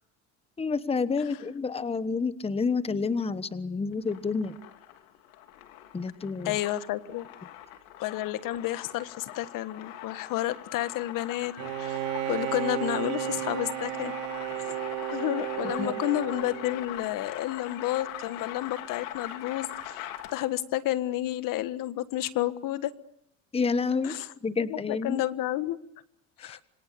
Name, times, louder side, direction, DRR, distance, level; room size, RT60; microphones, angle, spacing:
voice 1, 0.6-4.5 5.9-6.5 15.8-15.9 23.5-24.1 24.4-25.2 26.4-26.6, left 4 dB, 15° left, 14 dB, 1.2 m, -29 dB
sound 1, 3.9-20.6, left 12 dB, 75° left, 3.3 m, -42 dB
voice 2, 6.4-7.3 8.0-12.0 12.3-14.1 14.5-14.8 15.1-22.9 24.0-24.3 24.6-25.8 26.4-26.6, left 14 dB, 55° left, 13 dB, 1.6 m, -31 dB
Bowed string instrument, 11.6-17.1, right 15 dB, 75° right, 2.9 m, -33 dB
27.0 x 25.5 x 6.8 m, 0.79 s
supercardioid pair, 95°, 38 cm